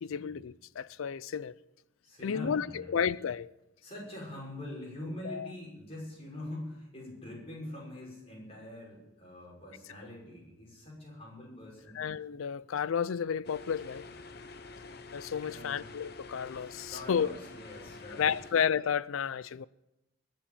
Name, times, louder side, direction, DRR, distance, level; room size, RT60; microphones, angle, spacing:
voice 1, 0.0-1.5 2.2-3.5 5.2-5.5 11.9-14.1 15.1-17.3 18.1-19.7, left 7 dB, 80° left, 0.4 m, -32 dB
voice 2, 2.0-3.1 3.8-12.1 15.4-15.9 16.9-18.6, left 1 dB, 30° left, 6.0 m, -44 dB
sound 1, 13.4-18.5, left 3 dB, 50° left, 0.9 m, -48 dB
21.5 x 7.6 x 7.0 m
head